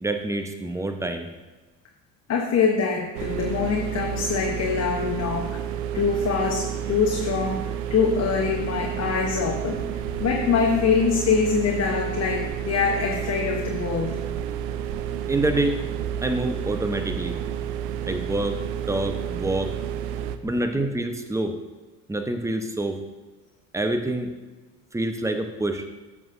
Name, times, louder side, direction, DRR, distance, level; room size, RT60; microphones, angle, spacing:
voice 1, 0.0-1.3 15.3-15.8 16.2-17.4 18.1-18.6 18.9-19.8 20.4-21.5 22.1-23.0 23.7-24.3 24.9-25.9, right 2 dB, 5° right, 6 dB, 0.9 m, -26 dB
voice 2, 2.3-5.6 5.9-14.2 20.7-20.9, left 5 dB, 35° left, 0 dB, 1.0 m, -24 dB
sound 1, 3.1-20.4, right 9 dB, 70° right, 0.6 m, -30 dB
13.5 x 6.1 x 2.6 m, 1.2 s
hypercardioid pair, 60°, 45 cm